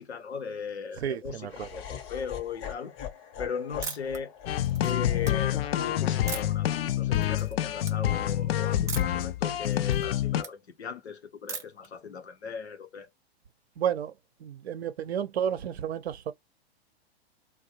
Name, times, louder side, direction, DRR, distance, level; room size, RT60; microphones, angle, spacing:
voice 1, 0.0-2.9 3.4-4.3 4.8-13.1, left 6 dB, 85° left, 0.8 m, -38 dB
voice 2, 1.0-1.7 13.8-14.1 14.4-16.3, right 9 dB, 75° right, 0.7 m, -31 dB
Laughter, 1.5-7.6, left 9 dB, 35° left, 0.8 m, -44 dB
sound 1, 3.8-4.2 4.6-5.3 6.3-6.7 7.1-7.5 7.8-8.0 8.9-9.2 9.6-10.5 11.5-11.9, right 5 dB, 10° right, 0.4 m, -38 dB
sound 2, 4.5-10.4, left 12 dB, 65° left, 0.5 m, -27 dB
2.4 x 2.2 x 2.8 m
hypercardioid pair, 110°, 32 cm